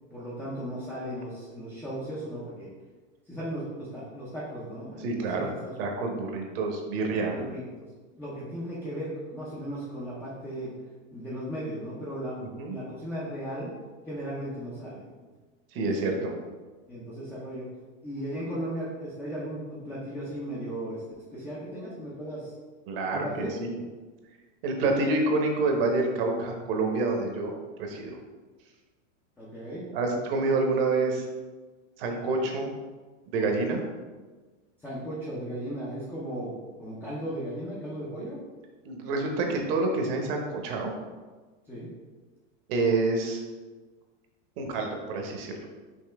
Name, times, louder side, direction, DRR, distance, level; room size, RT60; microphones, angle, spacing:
voice 1, 0.1-2.7 3.3-5.6 7.3-7.6 8.2-10.7 11.1-12.4 12.7-13.7 14.1-15.0 15.7-16.3 16.9-17.7 18.0-21.0 21.3-22.5 23.1-23.5 29.4-29.9 34.8-36.5 36.8-38.4 41.7-41.9, equal, 5° left, -8 dB, 0.5 m, -36 dB
voice 2, 5.0-5.5 5.8-7.4 12.4-12.8 15.7-16.3 22.9-23.7 24.6-28.2 29.9-31.2 32.0-32.7 33.3-33.8 38.8-40.9 42.7-43.4 44.6-45.5, right 3 dB, 50° right, 2 dB, 0.9 m, -27 dB
5.5 x 2.8 x 3.4 m, 1.3 s
supercardioid pair, 155°, 37 cm